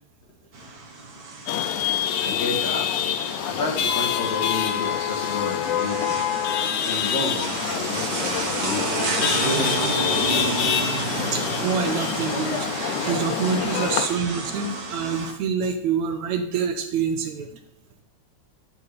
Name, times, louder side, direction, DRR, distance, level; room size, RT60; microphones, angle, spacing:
sound 1, 0.5-15.3, right 3 dB, 55° right, 1.0 m, -31 dB
Chatter / Vehicle horn car horn honking / Traffic noise roadway noise, 1.5-14.1, left 9 dB, 90° left, 2.2 m, -26 dB
voice 1, 2.2-6.2 6.8-10.6, left 2 dB, 60° left, -3 dB, 3.3 m, -32 dB
sound 2, 8.6-14.2, right 2 dB, 30° right, 1.9 m, -38 dB
voice 2, 11.2-12.7 13.0-17.6, right 6 dB, 75° right, 6 dB, 2.3 m, -26 dB
11.0 x 7.9 x 3.4 m, 0.77 s
omnidirectional pair, 3.4 m